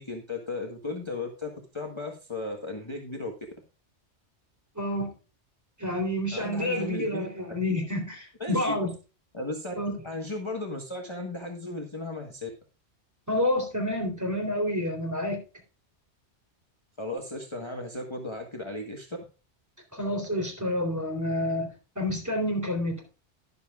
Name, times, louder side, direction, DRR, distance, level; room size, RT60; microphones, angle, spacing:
voice 1, 0.0-3.3 6.3-7.3 8.4-8.8 9.3-9.7 10.0-12.5 17.0-19.1, left 2 dB, 25° left, 1 dB, 1.4 m, -35 dB
voice 2, 4.7-5.1 5.8-8.9 9.7-9.9 13.3-15.4 19.9-21.7 21.9-23.0, left 1 dB, 15° right, 2 dB, 3.3 m, -29 dB
12.5 x 11.5 x 2.4 m, 0.32 s
omnidirectional pair, 1.2 m